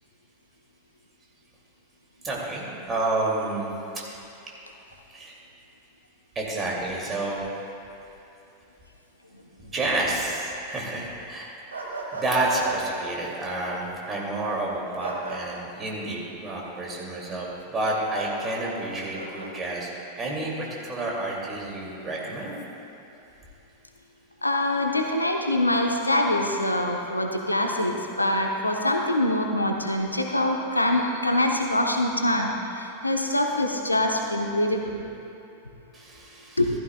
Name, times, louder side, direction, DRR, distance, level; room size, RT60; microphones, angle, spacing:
voice 1, 2.2-4.0 5.1-5.4 6.4-7.4 9.7-11.5 12.1-19.9 20.2-22.5 35.9-36.6, right 2 dB, 20° right, -3 dB, 2.4 m, -29 dB
sound 1, 11.7-12.8 15.0-15.4 18.1-18.4 19.1-19.5, right 3 dB, 75° right, 1.5 m, -35 dB
voice 2, 24.4-35.0 36.6-36.7, left 1 dB, 85° left, 3 dB, 0.8 m, -24 dB
14.5 x 12.5 x 2.3 m, 2.8 s
figure-of-eight pair, 90°, 0 cm